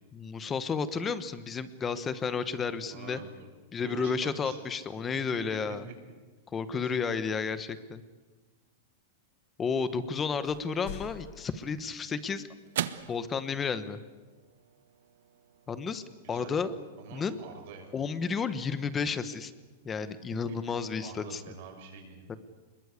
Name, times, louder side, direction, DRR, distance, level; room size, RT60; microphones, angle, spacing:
voice 1, 0.1-3.2 3.7-5.8 6.5-8.0 9.6-12.4 13.1-14.0 15.7-16.7 17.1-17.4 17.9-19.5 19.8-21.4 22.3-22.4, left 5 dB, 15° left, 13 dB, 1.1 m, -32 dB
voice 2, 2.9-3.5 3.8-4.6 5.1-5.2 6.8-7.0 16.2-16.6 17.0-18.0 20.3-20.6 21.0-22.3, right 6 dB, 50° right, 3 dB, 6.1 m, -46 dB
sound 1, 10.4-12.1 13.0-13.1, left 12 dB, 50° left, 0.9 m, -45 dB
sound 2, 11.5-20.0, right 11 dB, 75° right, 1.2 m, -44 dB
25.5 x 21.5 x 8.3 m, 1.3 s
supercardioid pair, 165°, 0 cm